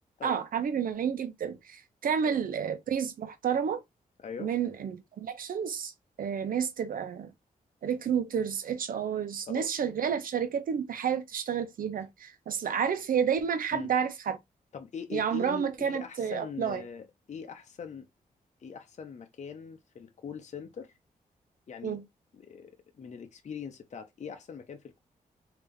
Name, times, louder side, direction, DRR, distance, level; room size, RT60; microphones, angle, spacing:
voice 1, 0.2-3.8 4.4-5.9 6.2-7.3 7.8-14.4 15.1-16.8 21.8-22.0, right 7 dB, 75° right, 0.8 m, -30 dB
voice 2, 4.2-4.5 9.5-9.7 13.7-13.9 14.7-18.1 18.6-20.9 21.7-22.0 22.3-25.0, left 6 dB, 55° left, 0.7 m, -42 dB
3.4 x 2.8 x 3.4 m
cardioid pair, 80°, 15 cm